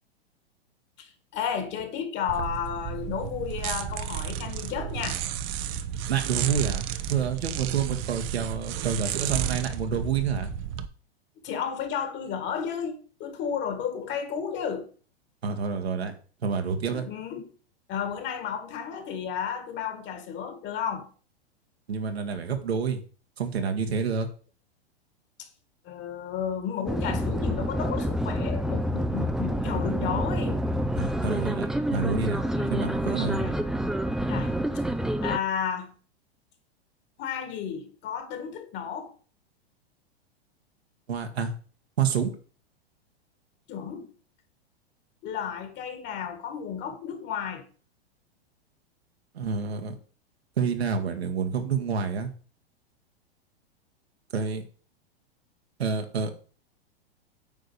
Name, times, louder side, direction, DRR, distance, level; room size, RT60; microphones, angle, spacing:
voice 1, 1.0-5.2 11.4-14.9 16.9-17.5 17.9-21.1 25.4-25.5 25.9-30.6 32.4-32.9 33.2-33.6 34.2-34.5 35.2-36.0 37.2-39.1 43.7-44.1 45.2-47.6, left 7 dB, 35° left, 2.0 m, -33 dB
sound 1, 2.3-10.9, right 10 dB, 40° right, 0.8 m, -32 dB
voice 2, 6.1-10.5 15.4-16.1 16.4-17.1 21.9-23.0 23.4-24.3 31.0-32.4 32.7-33.4 41.1-41.5 42.0-42.3 49.3-50.0 50.6-52.3 54.3-54.6 55.8-56.3, right 6 dB, 75° right, 1.8 m, -28 dB
sound 2, 26.9-35.4, equal, ahead, 0.5 m, -28 dB
9.2 x 3.9 x 7.0 m
hypercardioid pair, 105°, 31 cm